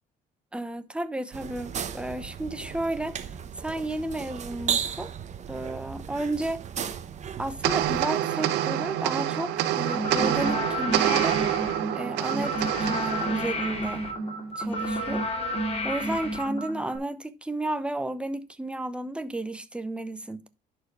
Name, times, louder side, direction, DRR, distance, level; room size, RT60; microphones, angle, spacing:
voice 1, 0.5-3.3 3.6-5.1 5.5-6.6 7.4-11.4 11.9-14.0 14.6-15.3 15.8-20.4, right 1 dB, 5° right, 0.9 m, -32 dB
sound 1, 1.3-8.0, right 8 dB, 45° right, 1.1 m, -35 dB
sound 2, 7.6-14.3, right 12 dB, 85° right, 1.0 m, -27 dB
sound 3, 9.8-17.0, equal, 35° left, 3.1 m, -30 dB
11.0 x 4.8 x 4.7 m
cardioid pair, 110°, 17 cm